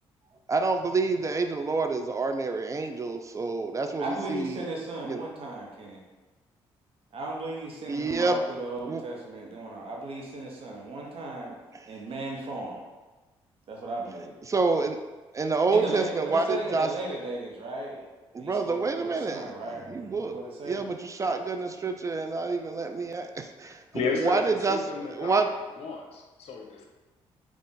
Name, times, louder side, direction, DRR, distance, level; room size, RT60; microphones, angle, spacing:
voice 1, 0.5-4.6 5.0-5.2 7.9-8.4 8.8-9.0 14.5-15.0 15.3-16.9 18.3-19.5 19.9-20.4 20.6-24.8 25.1-25.5, right 3 dB, 30° right, 6 dB, 0.4 m, -27 dB
voice 2, 4.0-6.0 7.1-11.6 11.9-12.8 13.7-14.3 15.7-18.1 18.4-19.9 20.2-20.8, right 2 dB, 60° right, -1 dB, 0.9 m, -36 dB
voice 3, 23.9-25.5 25.8-26.8, left 5 dB, 65° left, 2 dB, 0.6 m, -33 dB
3.6 x 2.4 x 4.0 m, 1.2 s
supercardioid pair, 65°, 11 cm